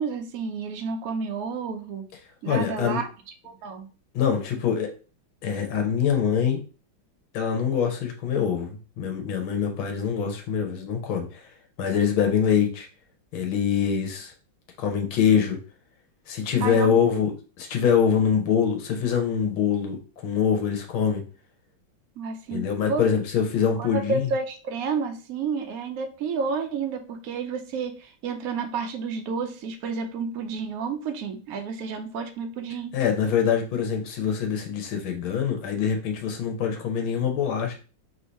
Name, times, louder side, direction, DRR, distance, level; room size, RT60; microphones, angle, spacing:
voice 1, 0.0-2.0 2.4-3.1 3.4-3.9 16.6-17.2 22.2-23.1 23.8-33.0, right 5 dB, 80° right, 6 dB, 0.7 m, -30 dB
voice 2, 2.5-3.0 4.1-4.9 5.4-6.6 7.3-11.4 11.8-12.9 13.3-14.3 14.8-15.6 16.3-17.3 17.6-21.2 22.5-24.3 32.9-37.7, left 7 dB, 85° left, 3 dB, 1.7 m, -24 dB
3.7 x 2.7 x 4.4 m, 0.36 s
omnidirectional pair, 2.2 m